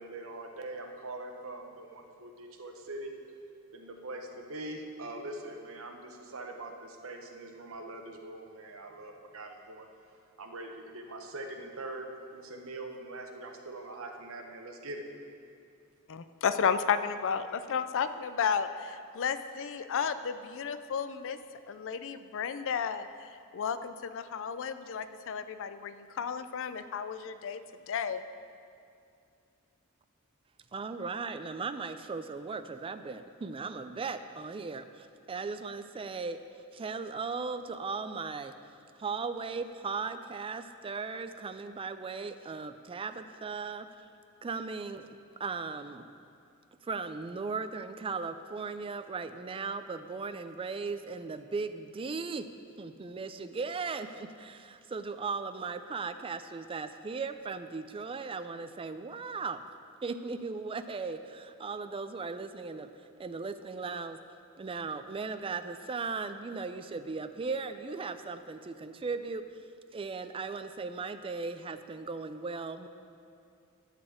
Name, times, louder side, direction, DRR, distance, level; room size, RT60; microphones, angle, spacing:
voice 1, 0.0-3.1 3.7-9.9 10.4-15.0, right 2 dB, 65° right, 4 dB, 1.0 m, -43 dB
voice 2, 16.1-21.4 21.7-27.6 27.9-28.2, left 6 dB, 60° left, 11 dB, 0.4 m, -33 dB
voice 3, 30.7-36.4 36.7-38.5 39.0-43.9 44.4-46.1 46.8-52.5 52.8-59.6 60.0-62.9 63.2-64.2 64.6-69.5 69.9-72.9, right 4 dB, 25° right, 10 dB, 0.4 m, -37 dB
11.5 x 4.2 x 7.7 m, 2.5 s
head